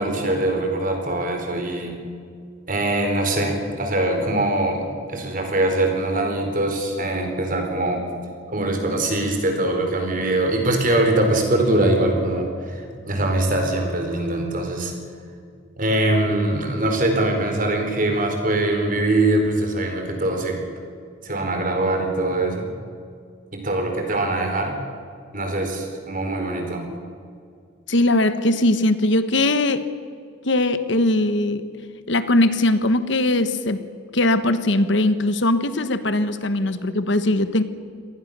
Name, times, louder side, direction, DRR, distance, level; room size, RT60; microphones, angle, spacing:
voice 1, 0.0-2.0 2.7-8.0 8.5-14.9 15.8-20.6 21.2-22.7 23.5-24.8 25.3-26.8 36.6-36.7, right 1 dB, 40° right, 4 dB, 4.3 m, -22 dB
voice 2, 27.9-29.9 30.4-31.6 32.1-33.8 34.1-37.6, left 1 dB, 60° left, 11 dB, 1.2 m, -20 dB
26.0 x 18.5 x 6.8 m, 2.3 s
head